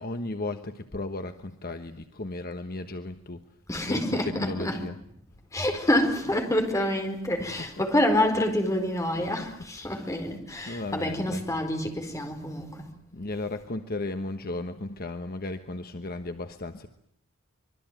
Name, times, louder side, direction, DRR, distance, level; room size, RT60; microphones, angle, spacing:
voice 1, 0.0-3.4 3.7-5.0 6.2-6.3 7.4-7.9 9.1-9.3 9.9-10.2 10.7-11.5 13.1-16.9, left 2 dB, 45° left, 1.2 m, -35 dB
voice 2, 3.7-4.9 5.5-12.9, left 1 dB, 15° left, 4.6 m, -27 dB
25.5 x 23.0 x 9.3 m
head